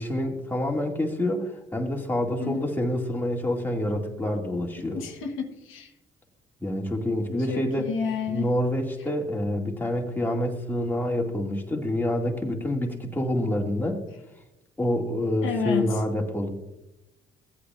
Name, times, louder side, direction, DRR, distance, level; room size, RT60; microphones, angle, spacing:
voice 1, 0.0-5.0 6.6-7.9 8.3-14.0 14.8-16.5, left 1 dB, 10° left, 0 dB, 2.2 m, -27 dB
voice 2, 2.4-2.7 4.8-5.9 7.5-8.5 15.4-16.0, left 6 dB, 85° left, 3 dB, 1.1 m, -30 dB
16.0 x 8.4 x 2.5 m, 0.94 s
cardioid pair, 90°, 20 cm